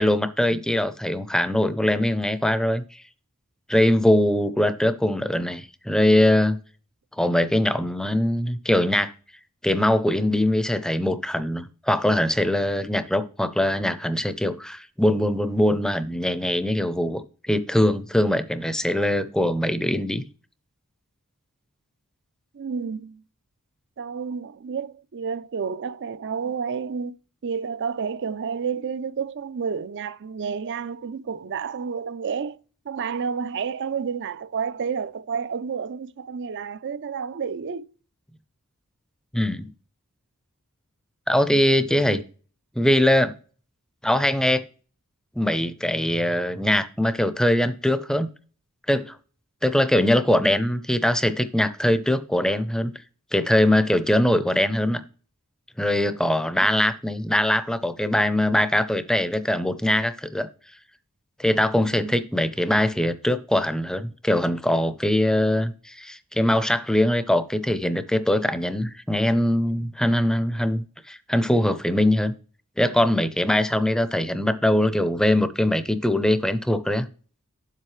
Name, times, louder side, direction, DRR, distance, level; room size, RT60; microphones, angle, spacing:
voice 1, 0.0-2.8 3.7-6.6 7.2-9.1 9.6-17.2 17.5-20.2 39.3-39.7 41.3-42.2 42.8-43.3 44.0-44.6 45.4-48.3 48.9-49.2 49.6-52.9 53.3-55.0 55.8-60.5 61.4-70.8 71.1-72.3 72.8-77.1, left 1 dB, 5° left, 0.5 m, -22 dB
voice 2, 22.5-23.2 24.0-27.2 27.4-32.6 32.9-37.9 42.1-42.2 56.6-56.7 61.8-62.2, right 6 dB, 55° right, 0.4 m, -30 dB
7.7 x 7.5 x 3.2 m
head